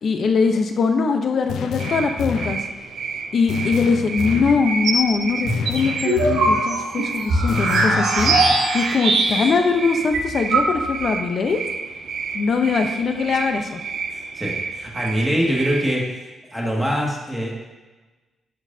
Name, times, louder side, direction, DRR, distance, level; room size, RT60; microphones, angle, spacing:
voice 1, 0.0-2.6 3.3-11.6 12.3-13.8, left 4 dB, 55° left, 5 dB, 0.9 m, -21 dB
sound 1, 1.5-2.7 3.5-4.7 5.5-6.7 7.5-8.7, left 7 dB, 80° left, 0.5 m, -29 dB
sound 2, 1.8-15.9, right 5 dB, 60° right, 0.6 m, -31 dB
sound 3, 4.5-5.1 5.4-9.6 9.9-10.0 10.1-11.1, right 2 dB, 80° right, 1.7 m, -20 dB
voice 2, 14.3-16.1 16.5-17.6, equal, ahead, -4 dB, 2.1 m, -23 dB
11.0 x 6.4 x 2.8 m, 1.2 s
cardioid pair, 110°, 0 cm